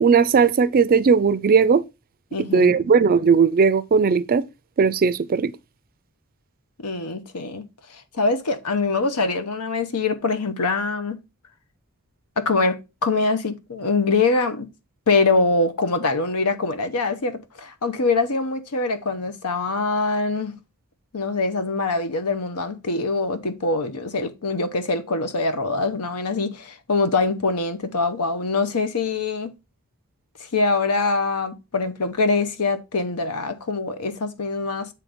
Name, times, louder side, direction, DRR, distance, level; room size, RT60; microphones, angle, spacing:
voice 1, 0.0-1.8 2.4-4.5 4.8-5.5, right 5 dB, 40° right, 0.4 m, -17 dB
voice 2, 2.3-2.8 6.8-7.6 7.9-11.2 12.4-14.7 15.1-20.6 21.1-29.5 30.4-34.9, left 3 dB, 90° left, 0.9 m, -24 dB
7.6 x 3.3 x 5.0 m
head